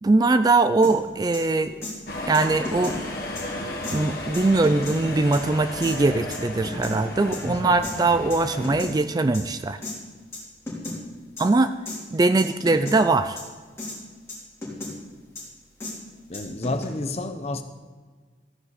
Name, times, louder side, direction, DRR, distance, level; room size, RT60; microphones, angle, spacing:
voice 1, 0.0-1.8 2.3-3.0 3.9-9.8 11.4-11.8 12.1-13.4, right 3 dB, 20° right, 11 dB, 0.3 m, -21 dB
sound 1, 0.8-0.9 1.3-1.4 1.8-1.9 2.3-3.0 3.4-3.5 3.8-4.0 4.3-4.9 5.3-5.4 5.8-5.9 6.3-7.0 7.3-7.4 7.8-7.9 8.3-8.9 9.3-9.4 9.8-9.9 10.3-10.4 10.7-11.0 11.4-11.5 11.9-12.0 12.4-13.0 13.4-13.5 13.8-14.0 14.3-14.9 15.3-15.4 15.8-15.9 16.3-16.8, left 2 dB, 15° left, 3.4 m, -33 dB
sound 2, 2.1-8.8, left 1 dB, 55° left, 1.8 m, -34 dB
voice 2, 7.4-7.8 16.3-17.6, left 2 dB, 35° left, 8 dB, 0.8 m, -30 dB
14.0 x 10.0 x 4.1 m, 1.5 s
head